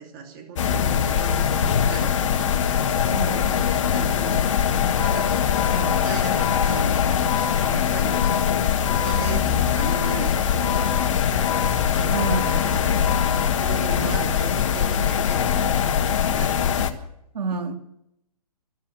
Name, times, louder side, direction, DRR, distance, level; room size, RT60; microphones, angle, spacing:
voice 1, 0.0-8.3 8.9-11.0 12.0-13.1 13.6-16.9, right 4 dB, 30° right, 3 dB, 2.8 m, -37 dB
atmo radiator far voices, 0.6-16.9, left 8 dB, 50° left, 1.4 m, -22 dB
voice 2, 3.1-3.5 12.1-12.4 17.3-17.7, right 4 dB, 80° right, 7 dB, 2.2 m, -28 dB
Organ, 4.9-14.0, left 7 dB, 70° left, 3.7 m, -33 dB
13.0 x 12.5 x 8.7 m, 0.80 s
hypercardioid pair, 160°, 21 cm